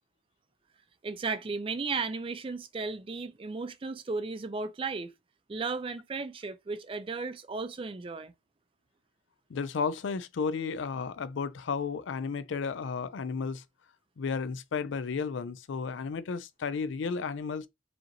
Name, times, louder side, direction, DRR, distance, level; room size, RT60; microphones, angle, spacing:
voice 1, 1.0-5.1 5.5-8.3, right 4 dB, 30° right, 0.4 m, -35 dB
voice 2, 9.5-13.6 14.2-17.7, left 5 dB, 90° left, 0.4 m, -33 dB
4.9 x 2.9 x 2.6 m
head